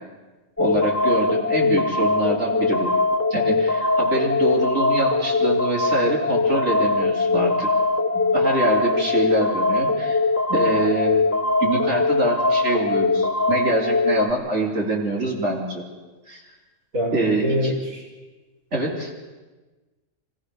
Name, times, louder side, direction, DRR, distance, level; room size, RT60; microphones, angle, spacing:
sound 1, 0.6-14.3, left 3 dB, 15° left, 0.6 m, -21 dB
voice 1, 0.6-2.9 3.3-7.7 8.1-10.2 10.5-11.2 11.6-15.8 16.3-16.4 17.1-17.8 18.7-19.1, right 2 dB, 55° right, -3 dB, 3.7 m, -25 dB
voice 2, 16.9-18.1, equal, 70° right, -1 dB, 3.6 m, -24 dB
24.5 x 16.5 x 6.5 m, 1.2 s
omnidirectional pair, 1.5 m